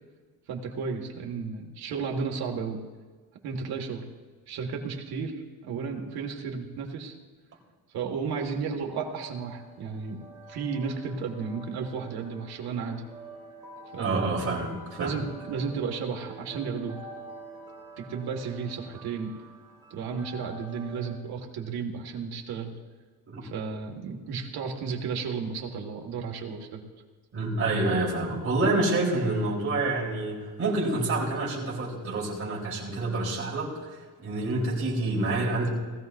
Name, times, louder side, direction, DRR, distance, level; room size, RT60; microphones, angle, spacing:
voice 1, 0.5-2.8 3.4-4.0 4.5-5.3 5.6-7.2 7.9-13.0 13.9-14.4 15.0-17.0 18.0-19.3 19.9-22.7 23.4-26.8, right 5 dB, 90° right, 1 dB, 2.0 m, -33 dB
sound 1, 8.9-21.2, right 2 dB, 10° right, 3.2 m, -47 dB
voice 2, 14.0-15.1 23.3-23.4 27.3-35.7, right 2 dB, 40° right, -5 dB, 3.8 m, -28 dB
20.0 x 14.5 x 2.6 m, 1.4 s
cardioid pair, 165°, 37 cm